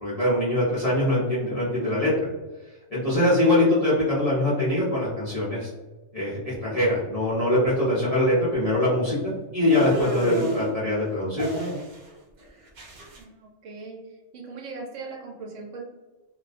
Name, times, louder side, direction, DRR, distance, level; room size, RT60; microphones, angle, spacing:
voice 1, 0.0-2.1 2.9-5.7 6.1-11.5, left 1 dB, 40° left, -8 dB, 0.6 m, -23 dB
sound 1, 9.7-10.7 11.4-12.1 12.4-13.2, right 2 dB, 55° right, 0.5 m, -30 dB
voice 2, 13.2-14.0 14.3-15.8, right 4 dB, 75° right, 0 dB, 0.9 m, -39 dB
2.3 x 2.1 x 2.4 m, 1.1 s
omnidirectional pair, 1.3 m